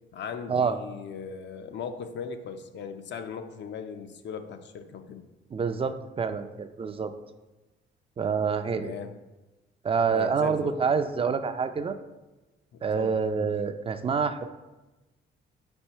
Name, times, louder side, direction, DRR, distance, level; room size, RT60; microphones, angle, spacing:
voice 1, 0.1-5.3 8.8-9.1 10.1-10.8 12.9-13.5, left 6 dB, 65° left, 8 dB, 0.6 m, -38 dB
voice 2, 5.5-7.1 8.2-8.9 9.8-11.9 12.8-14.4, right 5 dB, 30° right, 10 dB, 0.4 m, -27 dB
4.8 x 4.4 x 4.5 m, 1.1 s
cardioid pair, 90°, 20 cm